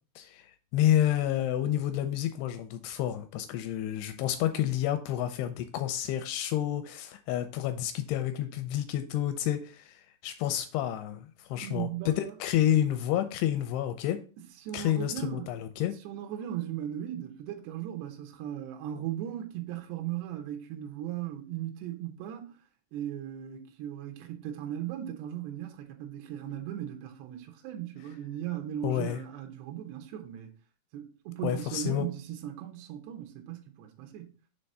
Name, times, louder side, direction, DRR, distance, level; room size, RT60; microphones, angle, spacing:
voice 1, 0.2-14.2 14.7-16.0 28.8-29.2 31.4-32.1, left 11 dB, 85° left, 2.6 m, -29 dB
voice 2, 11.6-12.3 14.6-15.6 16.0-22.6 22.9-30.5 30.9-34.3, right 11 dB, 85° right, 2.9 m, -37 dB
6.9 x 3.4 x 5.4 m
omnidirectional pair, 4.7 m